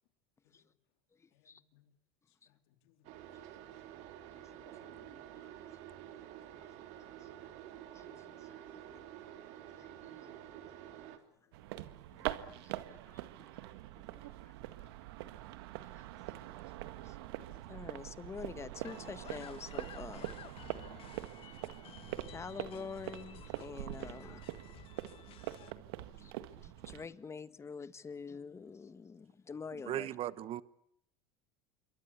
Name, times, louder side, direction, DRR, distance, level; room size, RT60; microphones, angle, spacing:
voice 1, 1.3-1.9 2.5-3.2 12.1-12.2 17.0-17.1 17.7-17.8 20.7-20.8 21.8-21.9 23.7-23.9 24.1-24.5 25.0-25.5 26.2-26.3 28.6-28.7, left 15 dB, 75° left, 3.5 m, -69 dB
sound 1, 3.0-11.2, right 11 dB, 60° right, 3.6 m, -50 dB
voice 2, 4.3-5.8 6.5-6.6 7.9-9.3 9.8-10.7 12.2-13.6 13.9-14.3 15.9-16.4 17.0-17.1 17.7-20.3 21.0-21.3 21.6-21.7 22.3-24.4 26.2-30.1, left 5 dB, 20° left, 1.6 m, -48 dB
sound 2, 11.5-27.1, right 15 dB, 80° right, 1.8 m, -44 dB
sound 3, 18.8-25.7, left 11 dB, 45° left, 1.6 m, -54 dB
voice 3, 29.7-30.6, right 13 dB, 45° right, 1.2 m, -38 dB
27.5 x 23.5 x 8.3 m
supercardioid pair, 110°, 13 cm